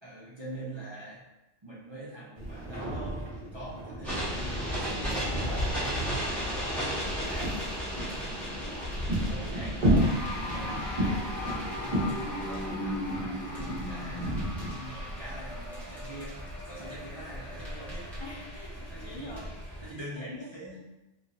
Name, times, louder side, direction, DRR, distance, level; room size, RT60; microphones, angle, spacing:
voice 1, 0.0-1.3 1.6-3.2 3.5-7.6 9.3-10.2 10.5-18.2 18.9-19.4 19.8-20.8, right 1 dB, 35° right, -8 dB, 0.5 m, -44 dB
sound 1, 2.3-5.8 6.3-8.2 8.7-14.7, equal, 55° right, 1.0 m, -32 dB
sound 2, 4.0-19.9, equal, ahead, 0.7 m, -35 dB
voice 2, 7.0-7.8 8.3-9.1 9.5-9.6 18.2-19.5 19.8-19.9 20.4-20.5 20.7-20.8, left 1 dB, 45° left, -6 dB, 0.3 m, -47 dB
3.0 x 2.2 x 2.5 m, 0.98 s
omnidirectional pair, 1.1 m